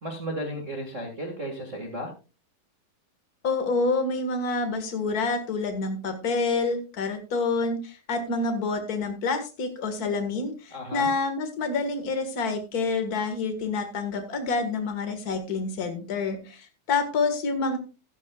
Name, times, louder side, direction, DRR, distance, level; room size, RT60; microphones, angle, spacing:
voice 1, 0.0-2.1 10.7-11.1, equal, 30° right, 2 dB, 1.4 m, -34 dB
voice 2, 3.4-17.8, left 3 dB, 40° left, 7 dB, 1.3 m, -28 dB
15.0 x 12.0 x 2.4 m, 0.32 s
omnidirectional pair, 4.1 m